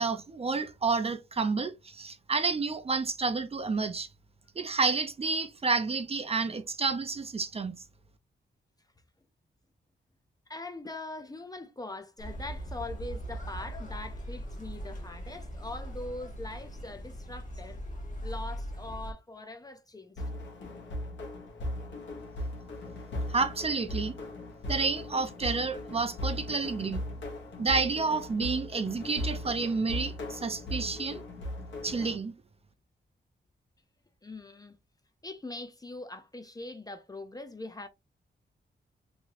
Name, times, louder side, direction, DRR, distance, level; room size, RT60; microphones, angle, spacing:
voice 1, 0.0-4.1 4.6-7.8 23.3-24.1 24.7-27.1 27.6-31.2 31.8-32.3, right 4 dB, 30° right, 0.5 m, -30 dB
voice 2, 10.5-17.8 18.2-20.2 34.2-34.8 35.2-37.9, left 2 dB, 20° left, 0.5 m, -42 dB
sound 1, 12.2-19.1, equal, 40° left, 1.2 m, -40 dB
sound 2, 20.2-32.1, left 1 dB, 75° left, 1.0 m, -38 dB
3.1 x 2.7 x 2.8 m
wide cardioid pair, 110°, 19 cm